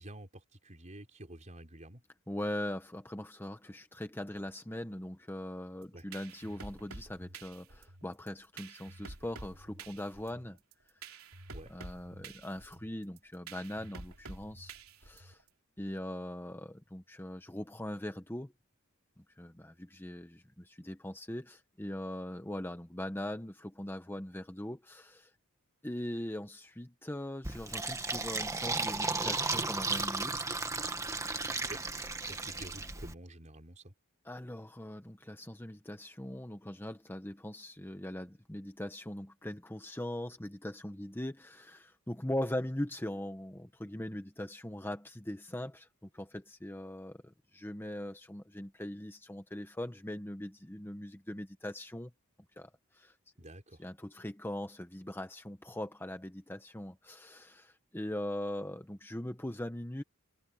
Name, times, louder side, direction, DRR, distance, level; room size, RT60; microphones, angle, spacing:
voice 1, 0.0-2.0 5.9-6.0 11.5-11.7 31.6-31.8 32.2-33.9 53.4-53.9, right 1 dB, 35° right, 4.2 m, -49 dB
voice 2, 2.3-10.6 11.1-11.2 11.7-14.7 15.0-15.4 15.8-18.5 19.2-25.3 25.8-30.5 34.2-52.1 52.6-53.2 53.8-60.0, left 1 dB, 10° left, 1.0 m, -41 dB
sound 1, 5.8-15.5, right 3 dB, 75° right, 3.4 m, -49 dB
Fill (with liquid), 27.4-33.1, right 3 dB, 15° right, 1.7 m, -34 dB
head